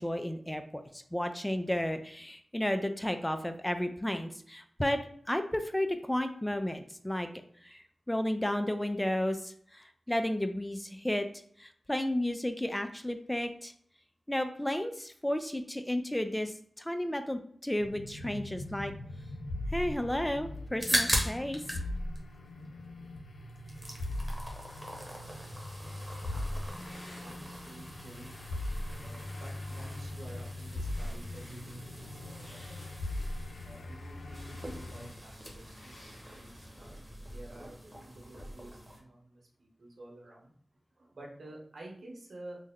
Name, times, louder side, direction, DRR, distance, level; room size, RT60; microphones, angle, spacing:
voice 1, 0.0-5.0 5.3-7.3 7.6-11.3 11.6-13.7 14.3-18.9 19.7-21.8, left 1 dB, 10° left, 8 dB, 0.3 m, -33 dB
sound 1, 17.8-35.1, left 1 dB, 90° left, 0.4 m, -40 dB
sound 2, 20.6-21.9 22.1-23.2 23.5-39.0, equal, 5° right, 1.0 m, -40 dB
sound 3, 25.7-36.8, equal, 75° left, 1.4 m, -54 dB
voice 2, 26.2-26.9 27.2-28.3 28.8-33.0 33.6-40.5 41.0-42.6, right 1 dB, 75° right, -2 dB, 1.0 m, -51 dB
3.3 x 2.0 x 3.5 m, 0.62 s
cardioid pair, 45°, 0 cm